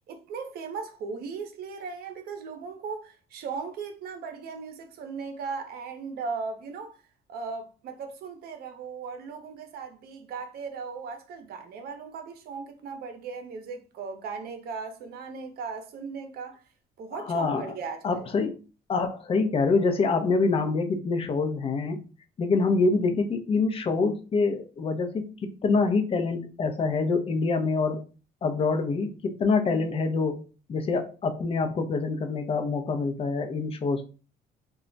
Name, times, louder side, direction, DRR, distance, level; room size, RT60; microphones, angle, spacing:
voice 1, 0.1-7.0 7.3-16.6 17.0-18.3, right 5 dB, 65° right, 0.7 m, -37 dB
voice 2, 17.1-17.7 18.0-18.6 18.9-22.0 22.4-28.0 28.4-30.4 30.7-34.0, left 4 dB, 35° left, 0.5 m, -26 dB
2.3 x 2.0 x 3.8 m
cardioid pair, 110°, 17 cm